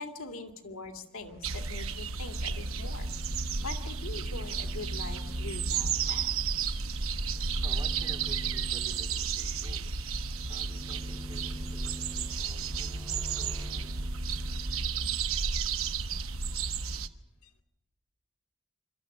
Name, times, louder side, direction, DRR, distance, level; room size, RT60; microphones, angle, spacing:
voice 1, 0.0-3.1 3.6-6.5 17.4-17.5, left 3 dB, 85° left, 5 dB, 2.2 m, -42 dB
Engine, 1.2-13.8, equal, 50° right, 3.3 m, -54 dB
sound 1, 1.4-17.1, right 5 dB, 80° right, 1.0 m, -32 dB
sound 2, 2.3-15.3 15.6-16.6, equal, 5° left, 0.7 m, -47 dB
voice 2, 7.6-9.9 10.4-14.1, right 1 dB, 25° right, 3 dB, 3.2 m, -53 dB
26.5 x 13.0 x 7.7 m, 0.98 s
head